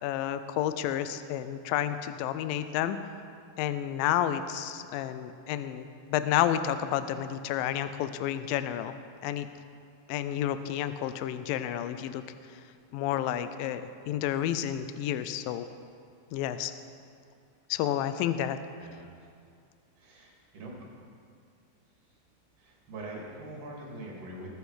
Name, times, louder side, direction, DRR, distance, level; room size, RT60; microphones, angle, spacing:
voice 1, 0.0-3.0 3.6-9.5 10.1-12.2 12.9-15.7 16.3-16.7 17.7-18.6, left 11 dB, 80° left, 11 dB, 2.2 m, -30 dB
voice 2, 20.0-20.8 22.6-24.5, right 1 dB, 45° right, -2 dB, 3.2 m, -43 dB
19.5 x 8.4 x 4.9 m, 2.4 s
omnidirectional pair, 4.2 m